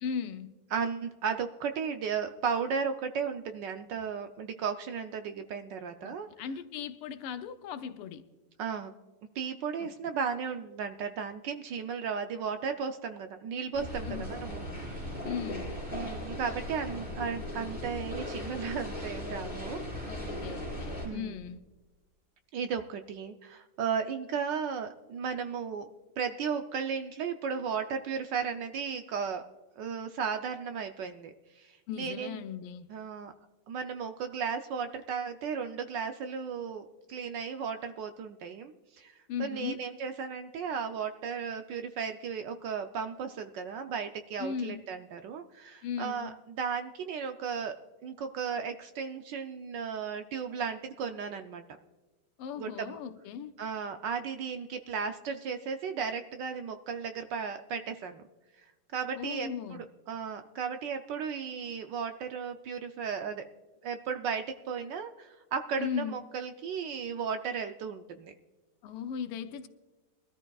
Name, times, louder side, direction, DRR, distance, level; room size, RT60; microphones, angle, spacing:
voice 1, 0.0-0.5 6.0-8.2 9.8-9.9 14.1-14.3 15.2-15.8 20.1-21.6 31.9-32.9 39.3-39.8 44.4-44.8 45.8-46.3 52.4-53.5 59.2-59.8 65.8-66.2 68.8-69.7, left 7 dB, 85° left, 1.7 m, -37 dB
voice 2, 0.7-6.3 8.6-8.9 9.3-15.2 15.9-20.1 21.0-21.4 22.5-25.9 26.2-29.4 29.8-32.4 32.9-33.3 33.7-39.1 39.4-51.6 52.6-53.0 53.6-58.2 58.9-59.8 60.1-63.5 63.8-68.3, right 6 dB, 70° right, 1.1 m, -35 dB
sound 1, 13.7-21.1, equal, 20° left, 5.3 m, -38 dB
22.5 x 13.0 x 2.3 m
omnidirectional pair, 2.4 m